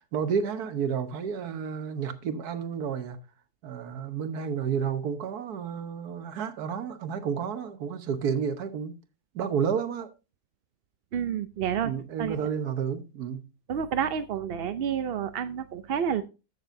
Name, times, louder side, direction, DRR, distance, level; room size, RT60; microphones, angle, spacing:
voice 1, 0.0-3.2 3.6-8.9 9.3-10.1 11.8-13.4, right 7 dB, 80° right, 1.5 m, -31 dB
voice 2, 11.1-11.9 12.2-12.4 13.7-16.2, right 8 dB, 60° right, 0.6 m, -29 dB
14.0 x 6.7 x 2.6 m
omnidirectional pair, 1.6 m